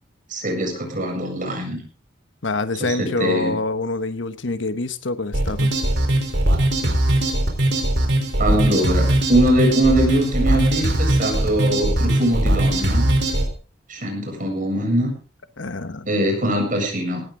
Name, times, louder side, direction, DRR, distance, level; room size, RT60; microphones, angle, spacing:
voice 1, 0.3-1.8 2.8-3.5 8.4-13.1 13.9-15.1 16.1-17.2, right 1 dB, 45° right, 2 dB, 7.6 m, -22 dB
voice 2, 2.4-5.7 15.6-16.1, left 3 dB, 70° left, 11 dB, 1.1 m, -26 dB
sound 1, 5.3-13.5, right 1 dB, 65° right, 4.1 m, -20 dB
18.0 x 15.0 x 3.8 m, 0.36 s
head